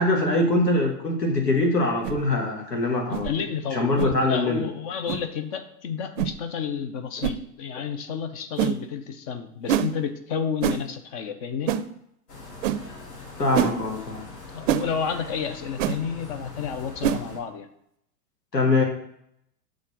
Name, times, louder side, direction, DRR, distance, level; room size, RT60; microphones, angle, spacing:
voice 1, 0.0-3.3 3.7-4.6 7.7-7.8 13.4-14.3 18.5-18.8, left 2 dB, 90° left, 1 dB, 1.6 m, -23 dB
sound 1, 2.0-2.2 3.1-3.3 4.0-4.2 5.1-5.2 6.2-6.4 7.2-7.4 8.6-8.8 9.7-9.9 10.6-10.8 11.7-11.9 12.6-12.8 13.5-13.8 14.7-14.9 15.8-16.0 17.0-17.2, right 10 dB, 55° right, 0.6 m, -24 dB
voice 2, 3.2-11.7 14.5-17.7, left 7 dB, 25° left, 9 dB, 0.4 m, -31 dB
sound 2, 12.3-17.4, left 3 dB, 70° left, 2.5 m, -42 dB
6.4 x 3.5 x 5.9 m, 0.76 s
figure-of-eight pair, 100°, 47 cm